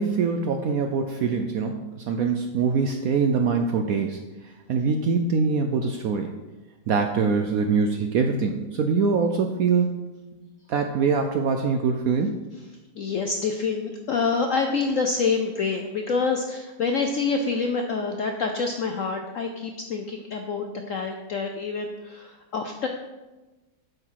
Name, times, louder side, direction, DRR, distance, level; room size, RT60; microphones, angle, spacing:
voice 1, 0.0-6.3 6.9-10.1 10.4-12.4, right 5 dB, 75° right, 4 dB, 0.8 m, -24 dB
voice 2, 13.0-22.9, left 4 dB, 70° left, 4 dB, 0.7 m, -27 dB
7.8 x 5.9 x 4.6 m, 1.1 s
omnidirectional pair, 2.0 m